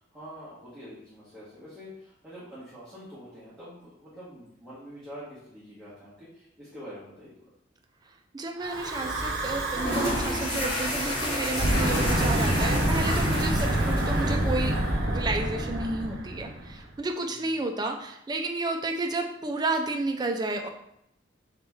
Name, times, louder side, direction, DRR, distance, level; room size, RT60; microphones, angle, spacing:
voice 1, 0.0-7.3 17.1-17.4, equal, ahead, -11 dB, 1.0 m, -45 dB
voice 2, 8.1-14.8 15.0-20.7, right 2 dB, 20° right, 3 dB, 0.3 m, -31 dB
Breathing / Wind, 8.6-10.6 11.4-16.8, right 1 dB, 60° right, 0.7 m, -27 dB
sound 1, 9.7-14.8, equal, 30° left, 1.5 m, -31 dB
sound 2, 10.4-14.0, left 2 dB, 75° left, 1.4 m, -47 dB
4.0 x 2.9 x 3.5 m, 0.78 s
head